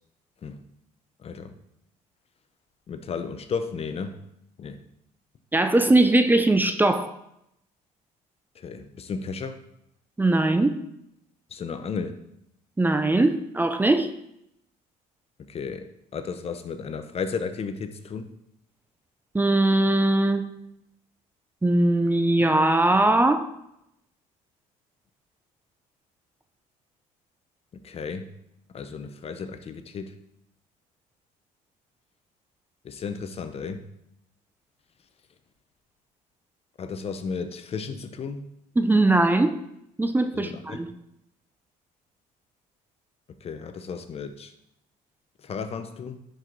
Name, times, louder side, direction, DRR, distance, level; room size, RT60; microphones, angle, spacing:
voice 1, 1.2-1.5 2.9-4.2 4.6-4.8 8.6-9.6 11.5-12.2 15.5-18.3 27.7-28.3 28.7-30.1 32.8-33.9 36.8-38.5 40.3-40.8 43.4-44.5 45.4-46.2, left 5 dB, 40° left, 9 dB, 0.7 m, -34 dB
voice 2, 5.5-7.1 10.2-10.8 12.8-14.1 19.3-20.5 21.6-23.5 38.8-39.6 40.0-40.9, right 2 dB, 10° right, 8 dB, 0.6 m, -20 dB
10.5 x 4.7 x 4.0 m, 0.80 s
supercardioid pair, 90°, 15 cm